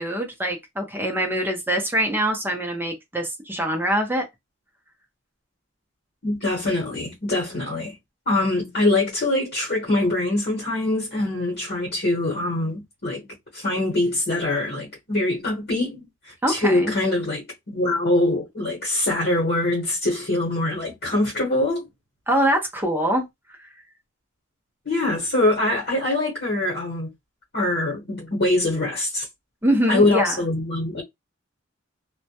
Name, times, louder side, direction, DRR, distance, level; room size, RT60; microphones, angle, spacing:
voice 1, 0.0-4.3 16.4-16.9 22.3-23.3 29.6-30.4, right 1 dB, 10° right, 0.6 m, -24 dB
voice 2, 6.2-7.9 8.3-13.3 13.5-21.8 24.8-27.1 27.5-29.3 29.9-31.0, left 2 dB, 50° left, 1.0 m, -23 dB
2.2 x 2.1 x 2.7 m
head